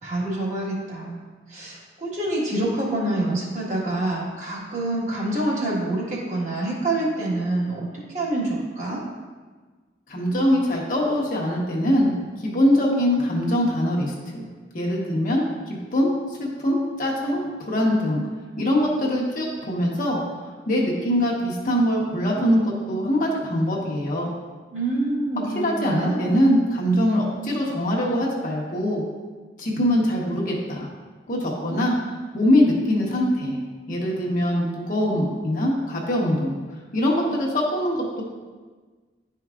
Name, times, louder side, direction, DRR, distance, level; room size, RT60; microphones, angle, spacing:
voice 1, 0.0-1.2 1.5-7.9 8.1-9.0 24.7-26.6, right 2 dB, 40° right, -5 dB, 1.5 m, -26 dB
voice 2, 10.1-12.1 12.4-14.5 14.7-18.2 18.6-20.2 20.7-24.3 25.6-29.0 29.6-30.9 31.3-31.9 32.3-33.6 33.9-36.5 36.9-38.2, equal, 45° left, -3 dB, 1.1 m, -23 dB
10.5 x 4.6 x 2.4 m, 1.4 s
head